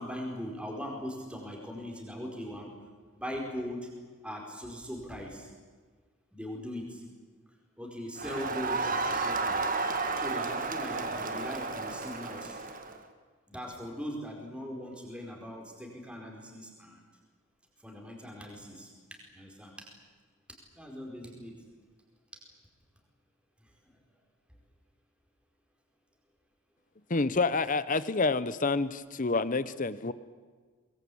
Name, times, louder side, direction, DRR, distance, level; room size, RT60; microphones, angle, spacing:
voice 1, 0.0-2.7 3.1-3.8 4.2-5.5 6.3-7.0 7.8-9.7 10.1-12.6 13.5-17.0 17.8-18.9 19.3-19.9 20.8-21.5, equal, 5° right, 0 dB, 4.7 m, -40 dB
Crowd, 8.2-13.0, right 3 dB, 40° right, 1.9 m, -32 dB
voice 2, 27.1-30.1, left 3 dB, 35° left, 15 dB, 0.7 m, -28 dB
23.5 x 22.5 x 8.6 m, 1.5 s
head